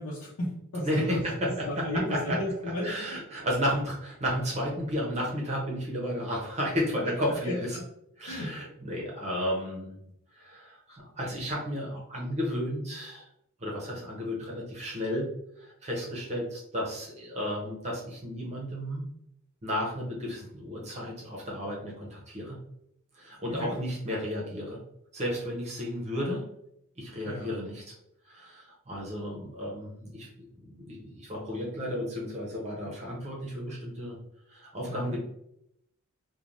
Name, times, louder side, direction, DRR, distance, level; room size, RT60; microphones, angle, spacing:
voice 1, 0.0-1.2 1.7-3.2 7.1-7.8 8.3-8.5 23.6-23.7 27.2-27.5 34.9-35.1, left 1 dB, 90° left, -7 dB, 0.7 m, -34 dB
voice 2, 0.8-2.4 2.8-7.8 8.2-10.0 10.3-13.3 13.6-15.3 15.6-19.0 19.6-22.6 23.1-24.8 25.1-26.4 27.0-28.0 28.3-34.2 34.5-35.2, equal, 30° right, -3 dB, 0.7 m, -33 dB
3.2 x 2.2 x 2.5 m, 0.76 s
head